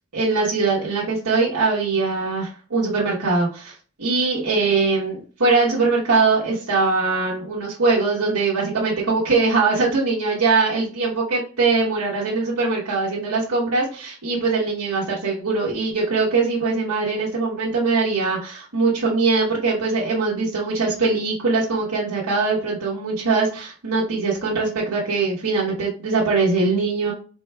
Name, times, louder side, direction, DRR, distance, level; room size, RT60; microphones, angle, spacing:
voice 1, 0.1-27.1, right 4 dB, 85° right, -6 dB, 1.1 m, -22 dB
4.6 x 3.8 x 2.3 m, 0.40 s
head